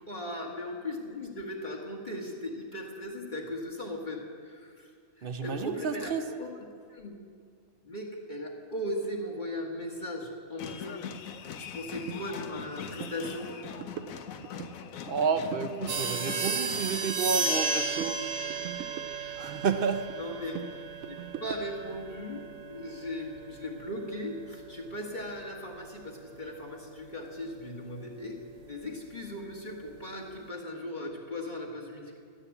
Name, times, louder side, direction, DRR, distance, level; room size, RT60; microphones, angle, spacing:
voice 1, 0.1-4.9 5.2-6.5 6.9-7.2 7.8-11.0 11.6-13.5 20.2-20.6 21.1-32.2, left 1 dB, 35° left, -2 dB, 1.7 m, -38 dB
voice 2, 5.2-6.2 15.0-18.2 19.4-20.1, right 5 dB, 50° right, 9 dB, 0.8 m, -30 dB
sound 1, 10.6-17.0, left 7 dB, 85° left, 1.2 m, -41 dB
sound 2, 12.1-12.2 12.6-12.7 13.0-13.2 13.5-14.7 15.1-15.7 16.0-17.7 18.0-19.8 20.1-22.0, right 10 dB, 75° right, 1.0 m, -42 dB
sound 3, 15.9-26.1, right 4 dB, 90° right, 1.6 m, -34 dB
12.5 x 9.9 x 8.3 m, 2.2 s
omnidirectional pair, 1.4 m